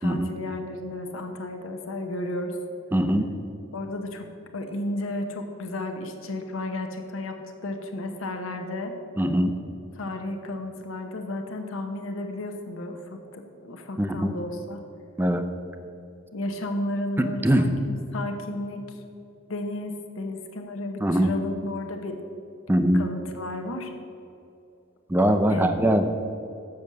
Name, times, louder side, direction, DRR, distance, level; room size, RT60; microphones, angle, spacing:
voice 1, 0.0-2.6 3.7-4.3 4.5-8.9 10.0-14.8 16.3-18.8 19.5-22.2 22.9-23.9 25.5-25.7, left 1 dB, 70° left, 4 dB, 0.9 m, -33 dB
voice 2, 2.9-3.3 9.2-9.5 14.0-14.3 15.2-15.4 17.2-17.7 21.0-21.3 22.7-23.0 25.1-26.1, equal, 10° right, 7 dB, 0.4 m, -22 dB
7.0 x 6.2 x 6.7 m, 2.7 s
head